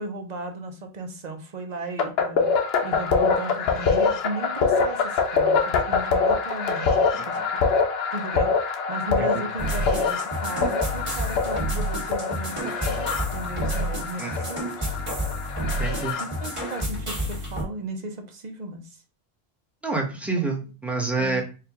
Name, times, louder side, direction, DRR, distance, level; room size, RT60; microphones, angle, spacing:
voice 1, 0.0-2.5 2.8-7.6 8.1-14.9 16.2-19.0 20.4-20.5 21.2-21.4, right 2 dB, 50° right, 6 dB, 0.8 m, -36 dB
sound 1, 2.0-16.8, left 5 dB, 80° left, 0.9 m, -25 dB
sound 2, 9.6-17.6, right 1 dB, 30° right, 1.4 m, -30 dB
voice 2, 15.6-16.2 19.8-21.4, right 3 dB, ahead, -1 dB, 0.9 m, -28 dB
4.6 x 2.4 x 3.5 m, 0.33 s
omnidirectional pair, 1.0 m